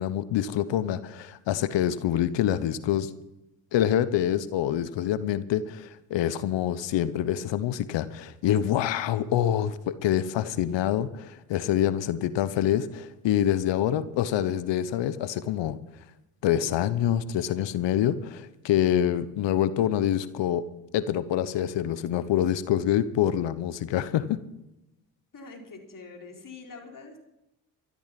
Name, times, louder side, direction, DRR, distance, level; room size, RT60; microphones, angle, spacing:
voice 1, 0.0-3.1 3.7-15.8 16.4-20.6 20.9-24.4, left 11 dB, 65° left, 15 dB, 1.0 m, -26 dB
voice 2, 25.3-27.2, left 4 dB, 45° left, 1 dB, 4.3 m, -44 dB
14.0 x 12.5 x 6.0 m, 0.90 s
supercardioid pair, 60°, 46 cm